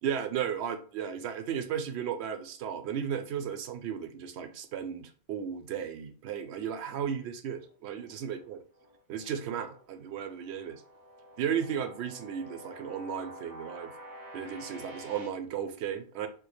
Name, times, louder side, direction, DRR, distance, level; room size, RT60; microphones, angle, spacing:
voice 1, 0.0-8.6 9.1-10.8 11.4-13.9 14.3-16.3, right 8 dB, 80° right, 8 dB, 0.8 m, -35 dB
sound 1, 7.5-9.8 10.2-15.3, equal, 25° right, 0.5 m, -48 dB
4.4 x 2.0 x 3.1 m, 0.43 s
omnidirectional pair, 1.1 m